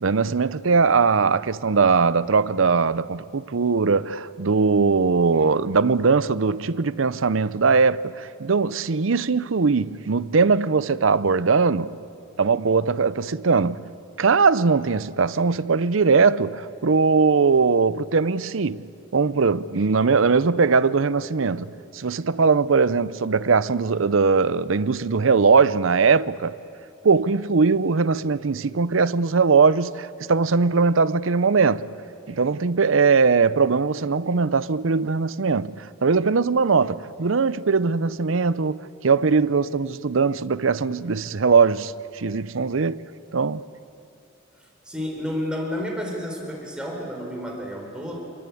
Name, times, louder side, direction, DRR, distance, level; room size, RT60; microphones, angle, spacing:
voice 1, 0.0-11.9 12.4-13.8 14.2-18.9 19.1-26.5 27.0-31.9 32.3-43.0 43.3-43.6, right 4 dB, 70° right, 0.7 m, -20 dB
voice 2, 44.8-48.2, equal, 5° right, 4.4 m, -30 dB
28.0 x 21.5 x 8.5 m
head